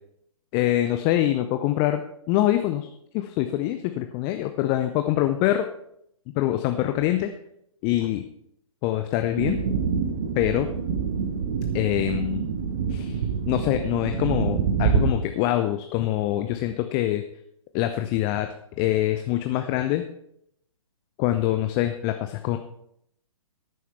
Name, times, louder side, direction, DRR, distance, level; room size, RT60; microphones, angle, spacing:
voice 1, 0.5-2.9 3.1-5.7 6.4-7.3 7.8-8.3 8.8-9.6 10.3-10.7 11.7-12.5 12.9-17.2 17.7-20.1 21.2-22.6, left 13 dB, 20° left, 8 dB, 0.5 m, -24 dB
sound 1, 9.4-15.1, right 6 dB, 35° right, 1.6 m, -26 dB
16.0 x 9.3 x 4.5 m, 0.74 s
figure-of-eight pair, 125°, 18 cm